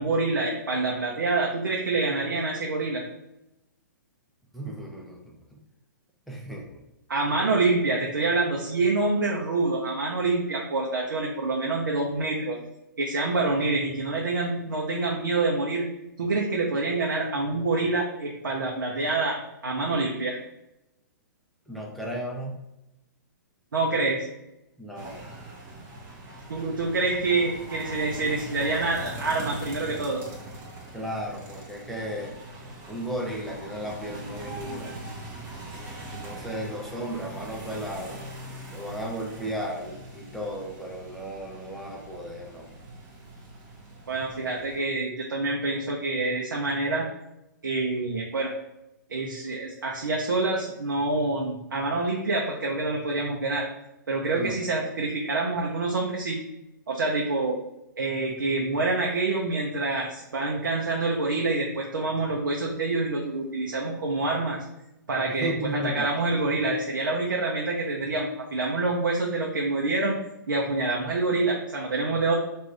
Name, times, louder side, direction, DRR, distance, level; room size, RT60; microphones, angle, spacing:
voice 1, 0.0-3.0 7.1-12.6 13.0-15.9 16.2-19.4 19.6-20.4 23.7-24.3 26.5-30.2 44.1-47.1 47.6-48.5 49.1-53.7 54.1-56.4 56.9-57.6 58.0-64.6 65.1-70.2 70.5-72.3, right 3 dB, 85° right, -1 dB, 0.7 m, -26 dB
voice 2, 4.5-5.4 6.3-6.8 7.4-7.5 21.7-22.6 24.8-25.3 30.9-32.3 32.9-34.9 36.1-38.2 38.7-42.7 54.4-54.6 65.3-66.4, equal, ahead, -3 dB, 0.7 m, -35 dB
sound 1, 24.9-44.8, right 1 dB, 25° right, 0.9 m, -41 dB
3.6 x 2.5 x 3.1 m, 0.89 s
hypercardioid pair, 125°, 11 cm